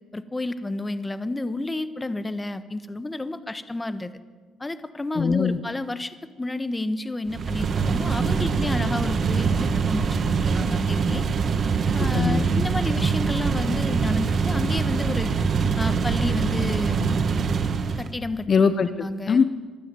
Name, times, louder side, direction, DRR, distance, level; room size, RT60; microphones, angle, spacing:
voice 1, 0.1-4.1 4.6-10.1 10.5-11.2 11.9-15.3 15.8-17.2 18.0-18.5 19.0-19.4, left 2 dB, 15° left, 11 dB, 1.3 m, -30 dB
voice 2, 5.2-5.6 12.1-12.6 18.5-19.4, left 5 dB, 35° left, 11 dB, 0.9 m, -21 dB
sound 1, 7.3-18.1, right 5 dB, 40° right, 1.5 m, -24 dB
23.5 x 12.5 x 9.1 m, 1.5 s
cardioid pair, 105°, 0 cm